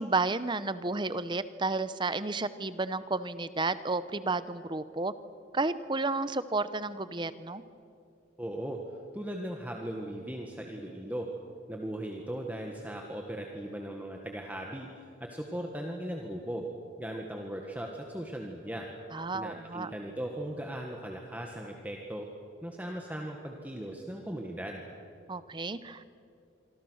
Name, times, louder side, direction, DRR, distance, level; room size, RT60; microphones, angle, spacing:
voice 1, 0.0-5.1 5.5-7.6 19.1-19.9 25.3-26.0, right 3 dB, 25° right, 14 dB, 0.8 m, -32 dB
voice 2, 8.4-8.8 9.1-11.3 11.7-14.9 15.2-16.6 17.0-18.9 19.3-22.3 22.6-24.8, right 1 dB, 10° right, 1 dB, 1.6 m, -38 dB
26.0 x 25.0 x 6.4 m, 2.5 s
head